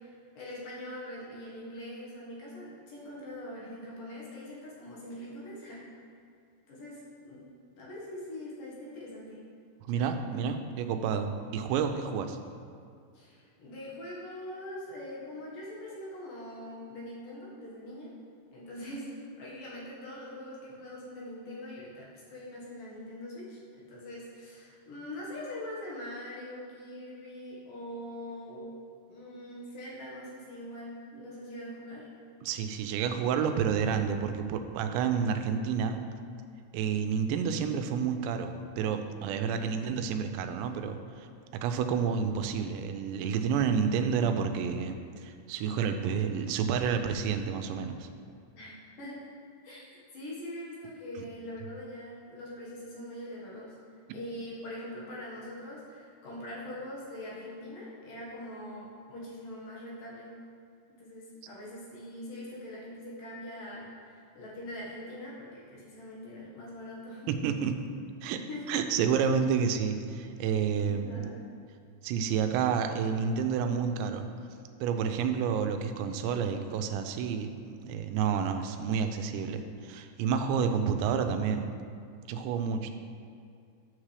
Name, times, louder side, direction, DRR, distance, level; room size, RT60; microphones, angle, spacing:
voice 1, 0.0-5.8 6.7-7.5 7.8-9.4 13.1-18.1 18.5-28.7 29.1-32.1 39.3-39.7 48.5-49.2 49.6-53.7 54.1-60.3 60.9-67.3 68.5-68.8 70.4-70.5 70.8-71.5, left 1 dB, 60° left, -5 dB, 2.8 m, -43 dB
voice 2, 9.9-12.4 32.4-36.0 36.7-41.3 41.5-48.1 67.3-67.9 68.2-68.4 68.7-71.2 72.0-74.3 74.8-81.7 82.3-82.9, right 6 dB, 90° right, 7 dB, 2.8 m, -30 dB
9.5 x 7.4 x 3.3 m, 2.3 s
omnidirectional pair, 5.0 m